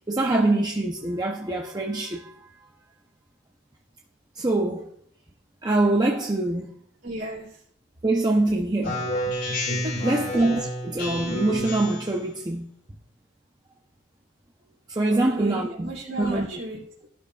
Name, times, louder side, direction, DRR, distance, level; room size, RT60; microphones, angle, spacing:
voice 1, 0.1-2.3 4.4-4.9 5.6-6.7 8.0-9.0 10.0-12.7 14.9-15.9 16.2-16.5, right 2 dB, 20° right, 0.7 m, -24 dB
voice 2, 7.0-7.5 9.8-10.3 15.1-17.1, right 1 dB, 60° right, 3.3 m, -35 dB
Speech synthesizer, 8.8-12.2, equal, 55° left, 3.7 m, -29 dB
14.0 x 12.0 x 2.4 m
head